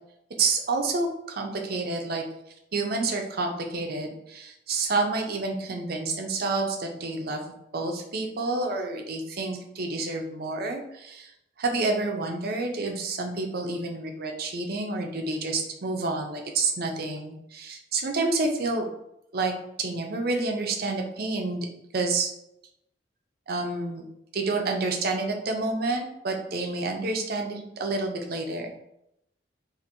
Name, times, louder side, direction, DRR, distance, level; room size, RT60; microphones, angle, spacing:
voice 1, 0.4-2.2 2.7-11.3 11.6-18.9 19.3-19.5 19.8-21.7 21.9-22.3 23.5-24.0 24.3-28.7, right 3 dB, 55° right, 2 dB, 0.6 m, -29 dB
4.3 x 2.6 x 2.6 m, 0.81 s
head